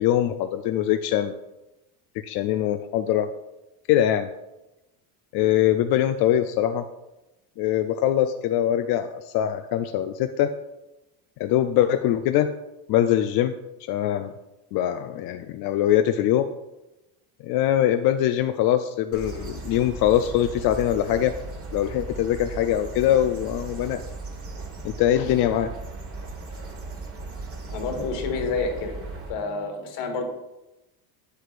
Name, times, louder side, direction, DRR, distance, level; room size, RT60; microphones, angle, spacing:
voice 1, 0.0-1.3 2.2-3.3 3.9-4.3 5.3-6.8 7.6-10.5 11.4-12.5 12.9-13.5 13.9-14.3 14.7-16.5 17.4-21.3 21.7-24.0 24.8-25.7, left 11 dB, 55° left, 8 dB, 0.5 m, -22 dB
sound 1, 19.1-29.3, right 3 dB, 30° right, 1.4 m, -37 dB
voice 2, 27.7-29.0 29.3-30.2, left 4 dB, 70° left, 3 dB, 1.7 m, -28 dB
8.1 x 7.9 x 2.5 m, 0.98 s
supercardioid pair, 110°, 45 cm